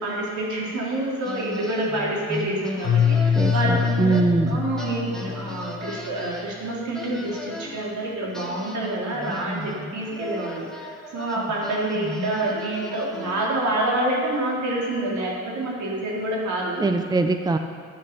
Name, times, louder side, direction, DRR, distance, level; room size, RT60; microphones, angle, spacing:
voice 1, 0.0-4.2 4.5-16.9, right 1 dB, 70° right, -3 dB, 3.6 m, -27 dB
sound 1, 1.2-4.5 4.8-7.9 8.3-13.6, left 1 dB, ahead, 1.6 m, -37 dB
Keyboard (musical), 2.8-6.0, left 7 dB, 50° left, 0.9 m, -24 dB
voice 2, 3.3-4.6 16.8-17.6, right 3 dB, 15° right, 7 dB, 0.7 m, -22 dB
12.0 x 8.9 x 6.9 m, 2.1 s
cardioid pair, 90°, 30 cm